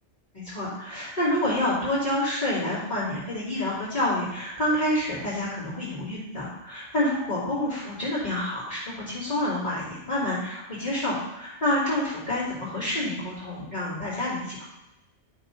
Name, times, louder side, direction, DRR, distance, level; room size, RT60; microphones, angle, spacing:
voice 1, 0.3-14.7, left 1 dB, 35° left, -12 dB, 3.0 m, -28 dB
11.5 x 6.4 x 4.1 m, 0.92 s
omnidirectional pair, 1.3 m